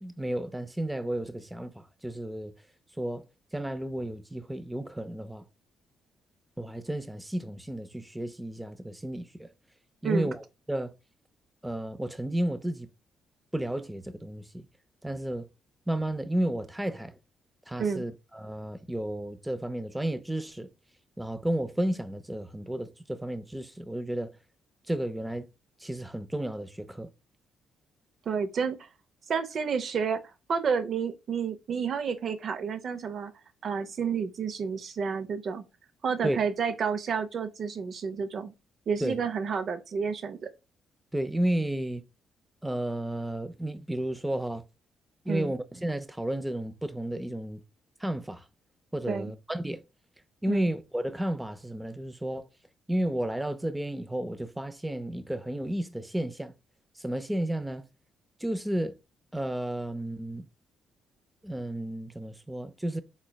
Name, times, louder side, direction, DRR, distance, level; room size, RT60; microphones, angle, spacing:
voice 1, 0.0-2.5 3.0-3.2 3.5-5.4 6.6-9.5 10.0-10.4 10.7-10.9 11.6-12.9 13.5-14.6 15.0-15.5 15.9-17.1 17.7-20.7 21.2-24.3 24.9-25.5 25.8-27.1 36.2-36.4 39.0-39.2 41.1-42.0 42.6-44.6 45.3-47.6 48.0-48.4 48.9-49.8 50.4-52.5 52.9-56.5 57.0-57.8 58.4-59.0 59.3-60.5 61.4-63.0, right 1 dB, 5° right, 0.4 m, -32 dB
voice 2, 28.3-28.9 29.3-30.2 30.5-33.3 33.6-35.6 36.0-38.5 38.9-40.5 45.3-45.5 49.1-49.3 50.5-50.7, right 6 dB, 55° right, 0.6 m, -30 dB
3.9 x 3.1 x 2.2 m
cardioid pair, 90°, 0 cm